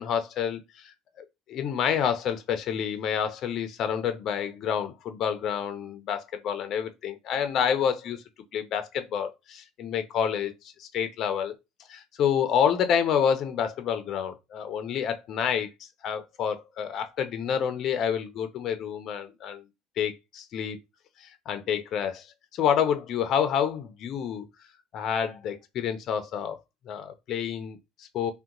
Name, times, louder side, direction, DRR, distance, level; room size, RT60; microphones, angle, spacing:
voice 1, 0.0-8.2 8.5-10.5 10.8-11.5 11.9-15.7 16.0-19.6 20.0-20.8 21.5-22.2 22.5-24.4 24.9-26.6 26.9-28.3, left 8 dB, 45° left, 0.5 m, -28 dB
2.8 x 2.2 x 3.7 m
cardioid pair, 140°, 0 cm